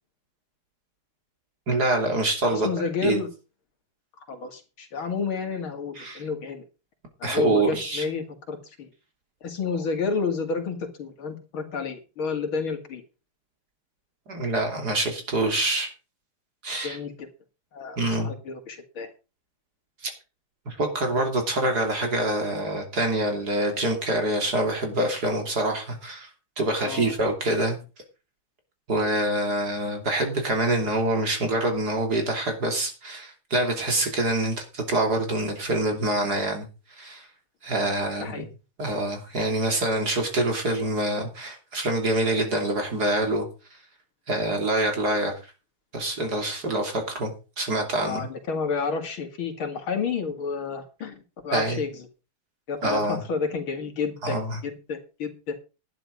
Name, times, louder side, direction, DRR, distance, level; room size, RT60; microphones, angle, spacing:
voice 1, 1.7-2.7 3.0-3.2 6.0-6.2 7.2-8.0 14.3-15.9 16.6-17.0 18.0-18.3 20.0-20.1 20.7-26.3 26.6-27.8 28.9-36.7 37.0-37.3 37.6-38.4 38.8-43.5 44.3-45.3 45.9-48.3 51.5-51.8 52.8-53.2 54.2-54.6, right 1 dB, 45° right, 3 dB, 3.5 m, -25 dB
voice 2, 2.5-3.3 4.3-6.6 7.2-8.9 9.4-13.0 16.8-17.3 17.7-19.1 26.8-27.1 38.2-38.5 48.0-51.1 51.4-51.9 52.7-54.4 54.6-55.6, left 5 dB, 70° left, 5 dB, 3.0 m, -30 dB
12.0 x 9.8 x 5.2 m, 0.32 s
omnidirectional pair, 2.3 m